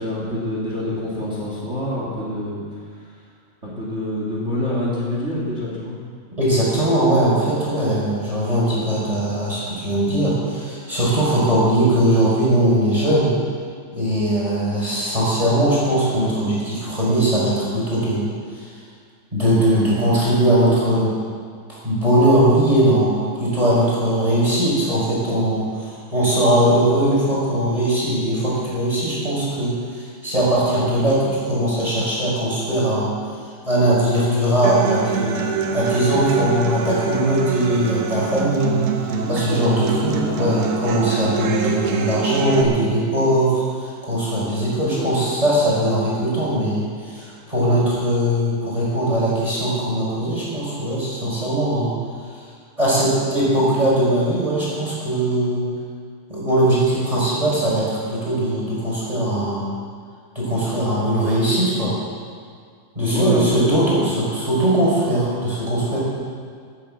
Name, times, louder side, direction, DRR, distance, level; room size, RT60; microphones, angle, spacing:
voice 1, 0.0-2.6 3.0-3.1 3.6-6.0 39.1-40.5 44.8-45.3 63.0-64.1, left 1 dB, 35° right, -5 dB, 1.0 m, -26 dB
voice 2, 6.4-13.3 13.9-18.3 19.3-21.1 21.7-33.1 33.6-35.4 35.7-38.8 39.3-51.9 52.8-55.6 56.3-59.7 60.3-61.9 62.9-66.0, right 1 dB, 10° right, -7 dB, 4.8 m, -20 dB
Human voice / Acoustic guitar, 34.6-42.6, right 5 dB, 70° right, 1.9 m, -25 dB
15.0 x 10.5 x 7.4 m, 2.1 s
omnidirectional pair, 5.3 m